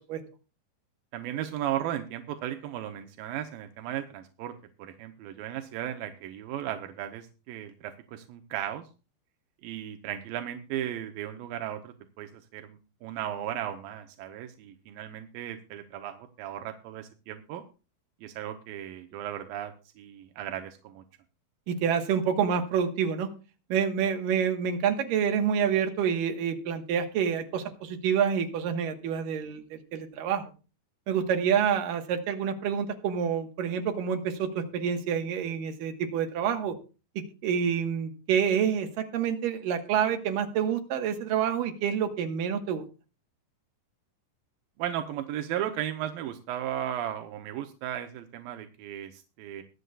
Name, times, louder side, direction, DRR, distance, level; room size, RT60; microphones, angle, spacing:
voice 1, 1.1-4.5 4.8-8.9 9.6-17.6 18.2-21.0 44.8-49.6, right 11 dB, 80° right, 6 dB, 2.2 m, -36 dB
voice 2, 21.7-23.3 23.7-30.5 31.1-36.7 37.2-42.9, right 7 dB, 65° right, 5 dB, 2.6 m, -28 dB
22.5 x 8.1 x 2.3 m, 0.33 s
omnidirectional pair, 4.9 m